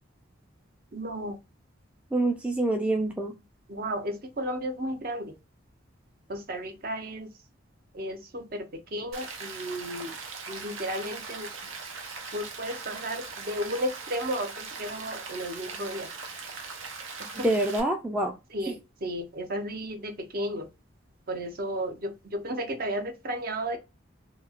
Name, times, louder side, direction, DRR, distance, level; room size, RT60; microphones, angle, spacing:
voice 1, 0.9-1.4 3.7-5.3 6.3-7.3 7.9-10.2 10.5-11.7 12.3-16.1 17.4-17.5 18.5-20.7 21.3-23.8, equal, 45° right, 0.6 m, -33 dB
voice 2, 2.1-3.3 17.4-18.3 18.7-18.8, right 1 dB, 5° right, 0.4 m, -26 dB
Rain, 9.1-17.8, right 4 dB, 80° right, 0.8 m, -40 dB
2.9 x 2.7 x 2.4 m
head